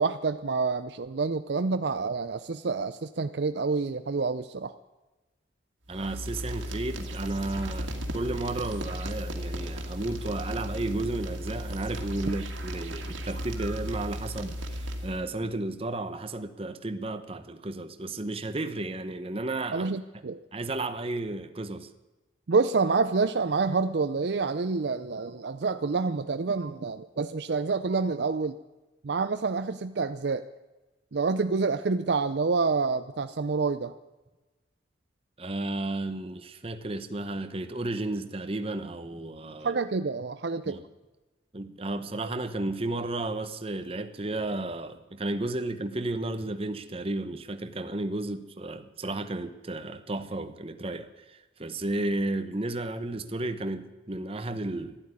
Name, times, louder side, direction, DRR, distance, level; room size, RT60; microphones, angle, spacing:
voice 1, 0.0-4.7 19.7-20.4 22.5-28.5 29.0-30.4 31.1-33.9 39.6-40.8, right 4 dB, 60° right, 10 dB, 0.5 m, -28 dB
voice 2, 5.9-19.9 20.5-21.9 35.4-39.7 40.6-40.8 41.5-55.1, right 2 dB, 30° right, 9 dB, 0.8 m, -33 dB
sound 1, 5.9-15.3, equal, 85° right, 2.0 m, -35 dB
12.5 x 12.0 x 9.7 m, 1.1 s
head